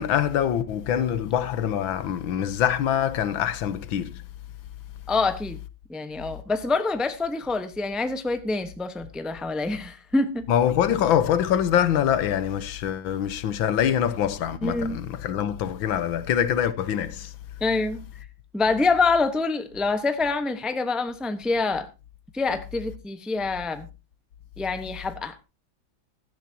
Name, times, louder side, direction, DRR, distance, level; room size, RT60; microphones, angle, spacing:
voice 1, 0.0-4.2 10.5-17.4, left 9 dB, 85° left, 1.7 m, -24 dB
voice 2, 5.1-5.6 5.9-10.5 14.6-15.0 17.6-18.0 18.5-21.9 22.3-23.9 24.6-25.4, left 3 dB, ahead, 0.7 m, -26 dB
15.5 x 12.5 x 2.8 m
omnidirectional pair, 2.1 m